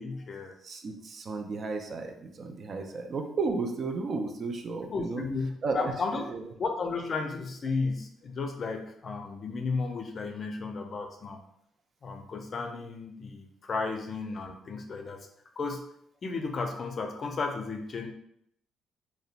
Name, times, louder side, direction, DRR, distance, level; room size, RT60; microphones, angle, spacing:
voice 1, 0.0-0.5 2.8-2.9 4.9-6.2 6.6-11.4 12.0-15.2 15.6-15.8 16.2-18.1, left 4 dB, 50° left, 4 dB, 0.4 m, -33 dB
voice 2, 0.6-5.2 5.6-6.4, right 4 dB, 50° right, 4 dB, 0.4 m, -33 dB
2.7 x 2.1 x 2.4 m, 0.73 s
hypercardioid pair, 50°, 0 cm